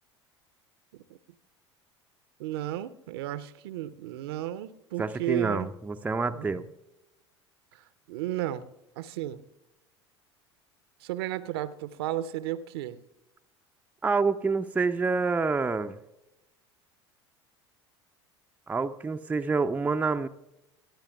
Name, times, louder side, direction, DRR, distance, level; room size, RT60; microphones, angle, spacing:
voice 1, 2.4-5.7 6.3-6.6 7.7-8.7 9.0-9.4 11.0-13.0, right 13 dB, 60° right, 15 dB, 0.6 m, -34 dB
voice 2, 5.0-6.7 14.0-16.0 18.7-20.3, right 4 dB, 10° right, 7 dB, 0.5 m, -27 dB
23.5 x 10.0 x 2.3 m, 0.92 s
figure-of-eight pair, 70°, 15 cm